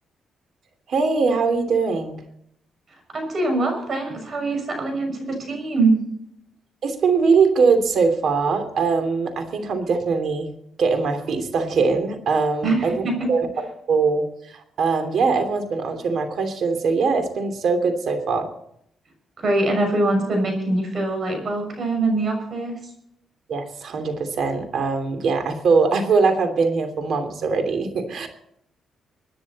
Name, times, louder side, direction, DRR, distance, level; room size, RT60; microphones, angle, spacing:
voice 1, 0.9-2.2 6.8-10.5 10.8-12.9 13.3-18.5 23.5-28.3, right 4 dB, 60° right, 7 dB, 2.9 m, -22 dB
voice 2, 3.1-6.0 12.6-13.3 19.4-22.7, right 2 dB, 45° right, 4 dB, 6.5 m, -23 dB
26.0 x 10.0 x 4.2 m, 0.73 s
cardioid pair, 100°, 0 cm